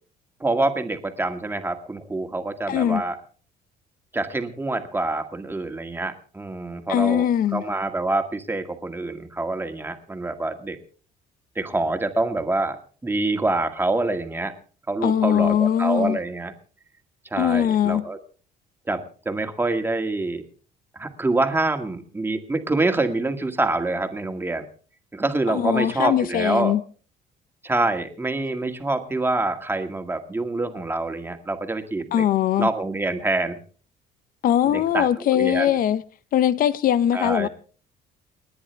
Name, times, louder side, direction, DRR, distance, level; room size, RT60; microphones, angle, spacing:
voice 1, 0.4-3.2 4.1-7.2 7.5-10.8 11.6-12.8 13.0-14.5 14.9-16.5 17.3-18.2 18.9-20.4 21.0-24.7 25.1-26.7 27.6-32.2 32.6-33.6 34.6-35.7 37.1-37.5, right 2 dB, 15° right, 2.0 m, -26 dB
voice 2, 2.7-3.0 6.9-7.6 15.0-16.2 17.4-18.1 25.5-26.8 32.1-32.7 34.4-36.0 36.3-37.5, left 10 dB, 60° left, 0.8 m, -21 dB
29.5 x 10.0 x 3.4 m
cardioid pair, 110°, 17 cm